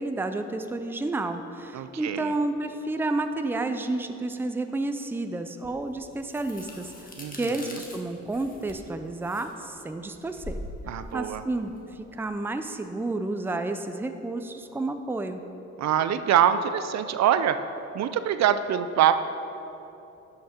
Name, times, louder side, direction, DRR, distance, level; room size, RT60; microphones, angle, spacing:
voice 1, 0.0-10.6 10.9-15.4, right 2 dB, 5° right, 7 dB, 0.5 m, -31 dB
voice 2, 1.7-2.3 7.2-7.8 10.9-11.4 15.8-17.6 17.9-19.1, right 10 dB, 65° right, 11 dB, 0.5 m, -24 dB
sound 1, 5.6-12.4, left 1 dB, 30° left, 1.5 m, -43 dB
11.5 x 5.9 x 4.4 m, 3.0 s
cardioid pair, 90°, 30 cm